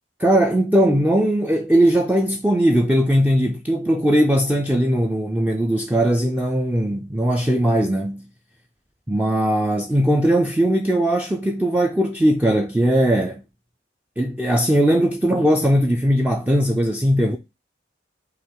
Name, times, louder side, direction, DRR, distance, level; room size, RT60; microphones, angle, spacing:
voice 1, 0.2-8.3 9.1-13.4 14.2-17.4, equal, 10° right, 0.3 m, -19 dB
5.6 x 2.4 x 3.6 m
head